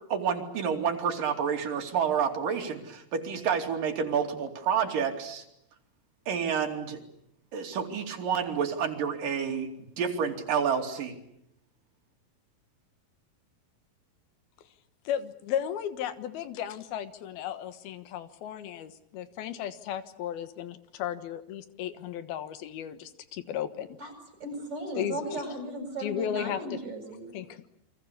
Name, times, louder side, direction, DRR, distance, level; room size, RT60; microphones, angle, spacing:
voice 1, 0.1-5.4 6.3-7.0 7.5-9.7 10.0-11.2, right 7 dB, 65° right, 3 dB, 4.4 m, -29 dB
voice 2, 15.0-24.0 25.0-25.4 26.0-26.8 27.3-27.7, left 10 dB, 90° left, 11 dB, 3.3 m, -35 dB
voice 3, 24.4-27.3, right 1 dB, 30° right, 5 dB, 8.1 m, -36 dB
29.0 x 23.5 x 8.4 m, 0.77 s
omnidirectional pair, 4.3 m